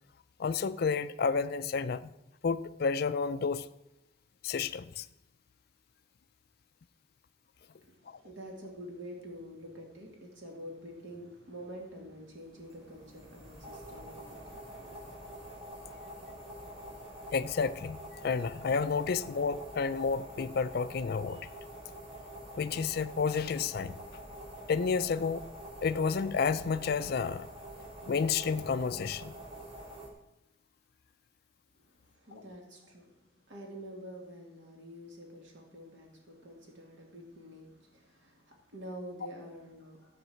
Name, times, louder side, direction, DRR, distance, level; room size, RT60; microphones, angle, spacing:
voice 1, 0.4-2.1 2.4-3.7 4.4-5.1 8.1-8.2 17.3-18.0 18.2-21.4 22.6-23.9 24.7-25.4 25.8-27.5 28.1-29.3, left 5 dB, 55° left, 11 dB, 0.4 m, -30 dB
voice 2, 7.7-15.1 31.8-33.2 33.5-40.2, equal, 70° right, 0 dB, 2.4 m, -47 dB
sound 1, 12.7-30.1, equal, 30° right, 3.2 m, -46 dB
15.0 x 5.3 x 7.8 m, 0.91 s
head